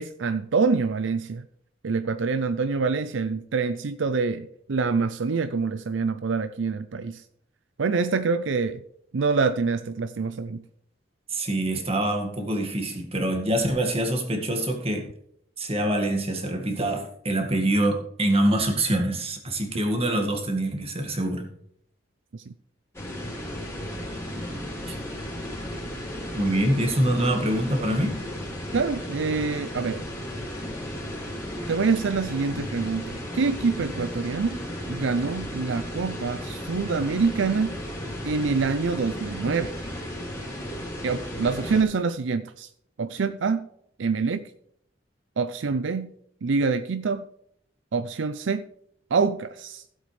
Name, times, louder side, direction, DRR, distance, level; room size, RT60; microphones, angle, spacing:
voice 1, 0.0-1.4 1.8-7.2 7.8-8.8 9.1-10.6 22.3-22.5 28.7-30.0 31.7-34.6 34.9-37.7 38.2-39.7 41.0-42.7 43.0-43.6 44.0-44.4 45.4-46.1 46.4-47.2 47.9-48.6 49.1-49.8, right 4 dB, 80° right, 0.5 m, -26 dB
voice 2, 11.3-15.1 15.6-21.5 24.5-24.6 24.9-25.0 26.3-28.2, right 1 dB, 35° right, 1.9 m, -25 dB
sound 1, 22.9-41.8, equal, 15° left, 3.5 m, -35 dB
15.5 x 7.9 x 3.3 m
head